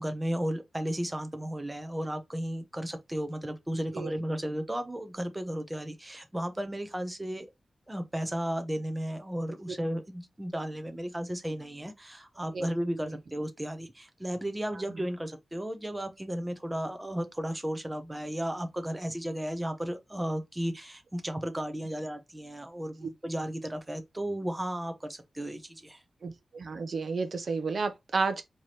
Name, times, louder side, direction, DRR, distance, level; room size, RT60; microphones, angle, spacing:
voice 1, 0.0-7.5 7.9-26.0, equal, 10° right, 0.7 m, -34 dB
voice 2, 26.2-28.4, right 4 dB, 55° right, 0.6 m, -31 dB
4.6 x 2.9 x 3.1 m
wide cardioid pair, 135°, 0 cm